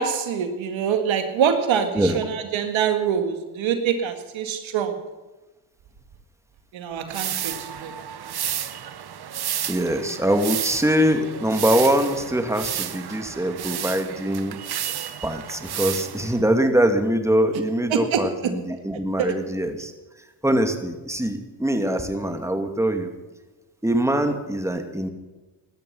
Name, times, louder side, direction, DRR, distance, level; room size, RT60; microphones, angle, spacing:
voice 1, 0.0-4.9 6.7-7.9 17.9-18.2, right 7 dB, 75° right, 6 dB, 2.0 m, -24 dB
voice 2, 1.9-2.3 9.7-14.6 15.2-19.9 20.4-23.1 23.8-25.1, right 1 dB, 5° right, 5 dB, 2.6 m, -23 dB
sound 1, 7.1-16.4, right 9 dB, 55° right, 1.3 m, -32 dB
17.5 x 12.5 x 5.8 m, 1.2 s
supercardioid pair, 60°, 47 cm